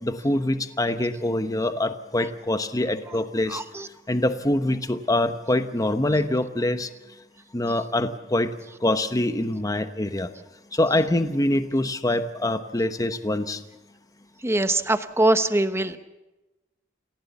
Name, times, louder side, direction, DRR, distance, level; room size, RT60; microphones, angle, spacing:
voice 1, 0.0-3.6 4.1-6.9 7.5-8.5 8.8-10.3 10.7-13.6, left 1 dB, 20° left, 9 dB, 1.0 m, -24 dB
voice 2, 3.1-3.9 14.4-16.0, right 2 dB, 15° right, 10 dB, 1.0 m, -23 dB
28.5 x 16.0 x 7.0 m, 1.0 s
head